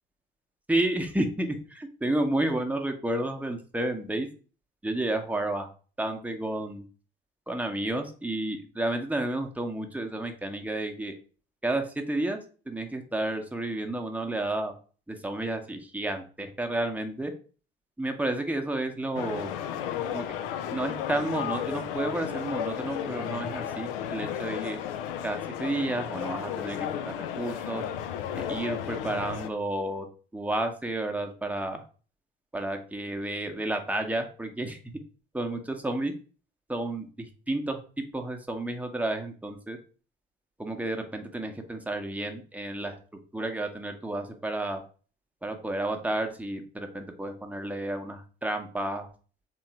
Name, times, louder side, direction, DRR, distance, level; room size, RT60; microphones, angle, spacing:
voice 1, 0.7-4.3 4.8-5.7 6.0-6.8 7.5-11.1 11.6-12.4 12.7-14.7 15.1-17.3 18.0-19.5 20.1-20.3 20.7-24.8 25.2-27.0 27.3-27.8 28.3-30.1 30.3-31.8 32.5-34.9 35.3-36.1 36.7-37.8 38.1-39.8 40.6-43.0 43.3-44.8 45.4-49.1, right 1 dB, 5° right, 4 dB, 0.9 m, -31 dB
sound 1, 19.1-29.5, left 9 dB, 70° left, 0.5 m, -33 dB
3.7 x 3.0 x 4.5 m, 0.39 s
figure-of-eight pair, 45°, 29 cm